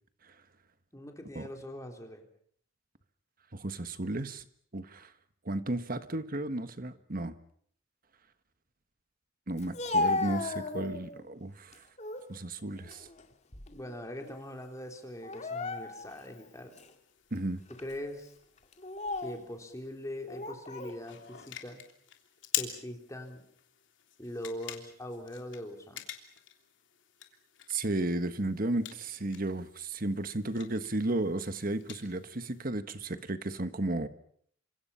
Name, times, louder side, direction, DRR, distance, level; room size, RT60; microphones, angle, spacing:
voice 1, 0.9-2.3 13.7-16.7 17.8-18.3 19.2-21.8 22.6-23.4 24.2-26.0, left 1 dB, 15° left, 3.7 m, -42 dB
voice 2, 3.5-4.4 4.7-5.1 5.4-7.4 9.5-11.8 12.3-13.1 17.3-17.6 27.7-34.1, right 2 dB, 45° right, 1.4 m, -33 dB
Speech, 9.6-11.2 11.7-12.3 12.7-14.0 14.2-14.4 15.2-16.2 16.8-16.9 17.7-17.9 18.7-19.4 20.3-21.0, left 2 dB, 35° left, 2.3 m, -35 dB
sound 1, 14.2-32.6, left 11 dB, 65° left, 3.2 m, -46 dB
28.5 x 26.0 x 5.7 m
head